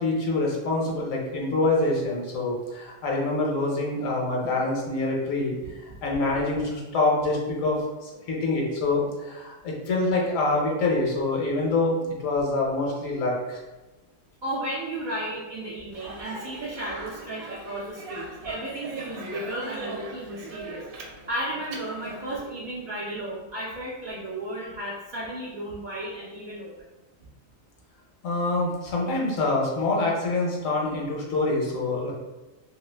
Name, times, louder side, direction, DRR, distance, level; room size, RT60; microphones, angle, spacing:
voice 1, 0.0-5.6 5.8-13.6 28.2-32.1, left 2 dB, 70° left, -2 dB, 1.1 m, -26 dB
voice 2, 14.4-20.9 21.3-26.7, right 1 dB, 70° right, -7 dB, 0.4 m, -34 dB
Speech, 15.9-22.4, right 2 dB, 85° right, 1.1 m, -39 dB
2.7 x 2.4 x 3.2 m, 1.1 s
omnidirectional pair, 1.5 m